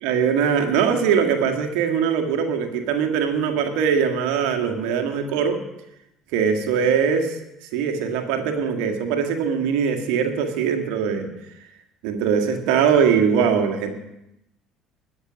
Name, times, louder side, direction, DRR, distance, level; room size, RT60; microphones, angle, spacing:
voice 1, 0.0-5.6 6.3-7.4 7.7-11.3 12.0-13.9, right 7 dB, 65° right, 4 dB, 2.0 m, -21 dB
20.5 x 7.3 x 5.3 m, 0.85 s
figure-of-eight pair, 60°, 0 cm